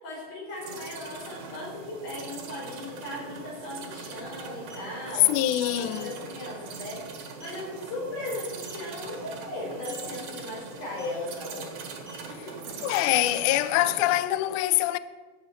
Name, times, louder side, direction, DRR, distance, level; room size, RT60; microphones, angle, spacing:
voice 1, 0.0-5.3 5.6-7.0 7.4-11.7 12.3-12.6, left 2 dB, 60° left, 5.8 m, -37 dB
sound 1, 0.6-14.2, right 5 dB, 75° right, 3.2 m, -41 dB
sound 2, 4.7-4.9 5.9-6.1 6.5-6.7 7.1-7.2 7.4-7.7 8.5-8.9 9.8-10.1 10.9-11.2 11.9-13.2, equal, 50° right, 3.1 m, -49 dB
voice 2, 5.2-6.1 12.8-15.0, left 15 dB, 85° left, 1.7 m, -24 dB
13.0 x 5.8 x 8.0 m
omnidirectional pair, 4.1 m